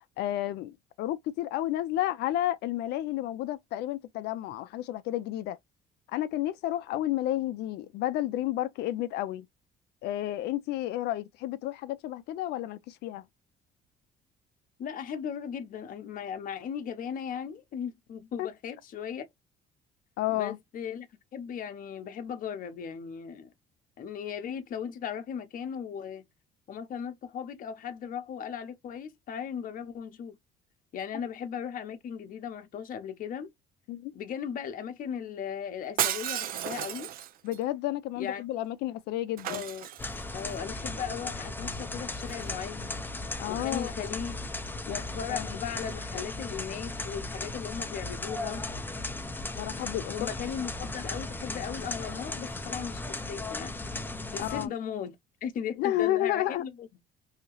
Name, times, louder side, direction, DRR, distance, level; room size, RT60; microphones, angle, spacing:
voice 1, 0.2-5.6 6.1-9.5 10.0-13.2 18.4-18.5 20.2-20.6 33.9-34.1 37.4-39.6 43.4-43.9 44.9-45.0 45.3-45.5 49.6-50.3 54.4-54.7 55.8-56.6, left 14 dB, 80° left, 0.4 m, -31 dB
voice 2, 14.8-19.2 20.3-21.1 21.3-23.5 24.0-26.2 26.7-30.4 30.9-33.5 34.1-37.1 38.2-38.4 39.5-39.9 40.3-43.0 43.5-44.4 44.9-48.6 50.1-53.7 54.3-55.2 55.4-56.9, left 8 dB, 55° left, 0.8 m, -37 dB
Shatter, 36.0-37.6 39.4-40.5 42.2-42.5, right 11 dB, 60° right, 0.4 m, -33 dB
sound 1, 40.0-54.7, left 2 dB, 10° left, 0.5 m, -36 dB
2.8 x 2.8 x 2.9 m
cardioid pair, 110°, 17 cm